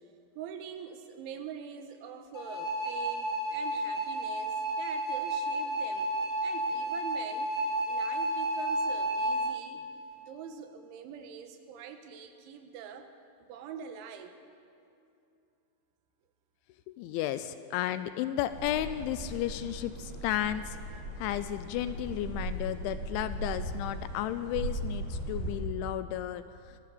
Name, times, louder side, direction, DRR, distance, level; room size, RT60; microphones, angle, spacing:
voice 1, 0.4-6.1 6.4-7.5 7.9-9.9 10.2-13.1 13.4-14.4, right 7 dB, 75° right, 7 dB, 3.5 m, -44 dB
sound 1, 2.3-9.5, right 1 dB, 20° left, 0.5 m, -31 dB
voice 2, 16.9-20.8 21.2-26.4, left 12 dB, 80° left, 12 dB, 2.8 m, -33 dB
sound 2, 18.5-25.6, right 1 dB, 50° right, 7.4 m, -38 dB
24.5 x 16.0 x 6.8 m, 2.6 s
omnidirectional pair, 5.7 m